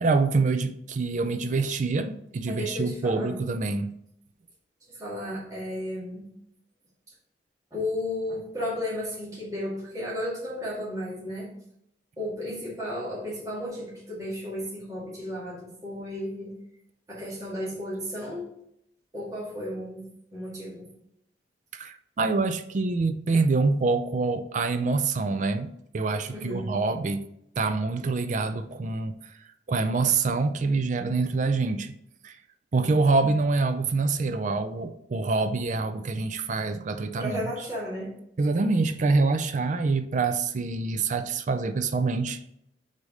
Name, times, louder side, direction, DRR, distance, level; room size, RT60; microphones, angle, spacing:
voice 1, 0.0-3.9 21.7-27.3 27.6-29.1 29.7-31.9 32.2-32.4 32.7-37.5 38.4-42.5, right 3 dB, 45° right, 0.4 m, -26 dB
voice 2, 2.5-3.4 4.9-6.2 7.7-11.5 12.2-16.5 17.1-18.5 19.1-20.0 20.3-20.9 26.3-26.8 37.2-38.1, left 1 dB, 20° right, 1.9 m, -33 dB
4.8 x 4.1 x 5.0 m
head